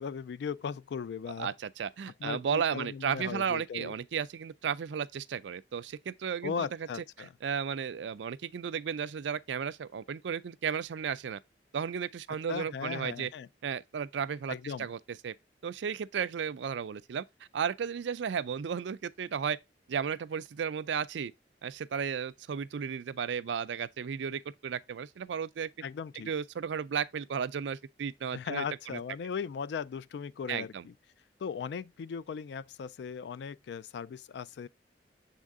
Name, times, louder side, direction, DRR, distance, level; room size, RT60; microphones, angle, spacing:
voice 1, 0.0-1.5 2.2-3.9 6.4-7.3 12.5-13.5 14.5-14.9 25.8-26.3 28.3-30.9 31.4-34.7, left 6 dB, 70° left, 0.3 m, -38 dB
voice 2, 1.4-6.9 7.2-11.4 11.7-13.3 13.6-15.3 15.6-17.2 17.5-19.6 19.9-21.3 21.6-25.7 26.3-29.0 30.5-30.8, right 7 dB, 90° right, 0.4 m, -34 dB
7.3 x 3.7 x 3.6 m
head